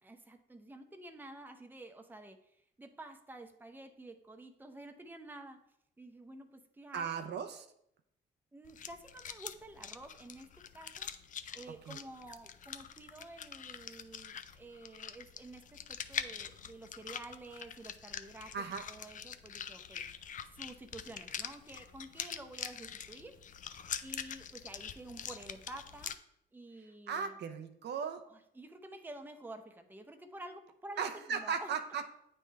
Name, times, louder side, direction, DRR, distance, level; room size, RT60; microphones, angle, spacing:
voice 1, 0.0-5.6 6.0-7.3 8.5-11.1 11.5-18.6 18.9-20.2 20.5-23.4 24.0-26.1 26.5-27.4 28.3-31.7, right 2 dB, 10° right, 6 dB, 0.6 m, -50 dB
voice 2, 6.9-7.7 11.9-12.0 18.5-18.8 27.1-28.2 31.0-32.1, right 6 dB, 60° right, 7 dB, 0.5 m, -37 dB
sound 1, 8.6-26.2, left 8 dB, 40° left, 0.4 m, -44 dB
9.0 x 3.2 x 3.3 m, 0.76 s
cardioid pair, 90°, 20 cm